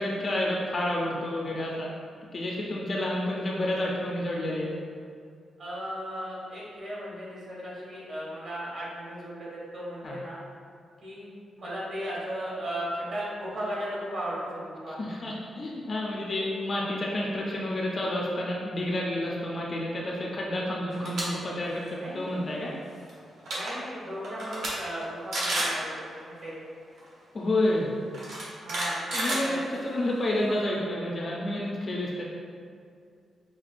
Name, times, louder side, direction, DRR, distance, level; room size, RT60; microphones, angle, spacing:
voice 1, 0.0-1.9 2.3-4.7 10.0-10.2 15.0-22.7 27.3-27.9 29.1-32.2, left 1 dB, 30° left, -3 dB, 0.4 m, -30 dB
voice 2, 5.6-10.4 11.0-11.3 11.6-15.0 22.0-22.5 23.5-26.6 28.6-29.6 30.3-31.0, equal, 45° right, -7 dB, 1.2 m, -36 dB
sound 1, 20.9-21.2 21.6-21.9 23.1-23.2 23.4-23.7 24.2-24.7 25.0-25.1 25.3-25.8 27.0-27.1 28.1-30.0, right 1 dB, 65° right, 0.9 m, -30 dB
5.8 x 2.3 x 2.4 m, 2.3 s
wide cardioid pair, 175°, 0 cm